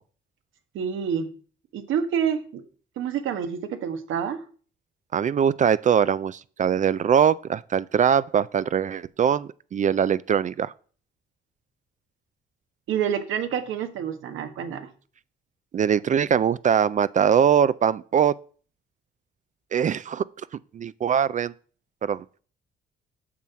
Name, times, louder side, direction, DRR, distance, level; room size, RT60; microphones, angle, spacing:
voice 1, 0.7-1.3 1.7-2.6 3.0-4.4 12.9-14.9, right 8 dB, 80° right, 1.3 m, -28 dB
voice 2, 5.1-10.7 15.7-18.4 19.7-20.2 20.7-21.5 22.0-22.2, right 8 dB, 40° right, 0.4 m, -22 dB
7.4 x 6.2 x 5.6 m
cardioid pair, 90°, 20 cm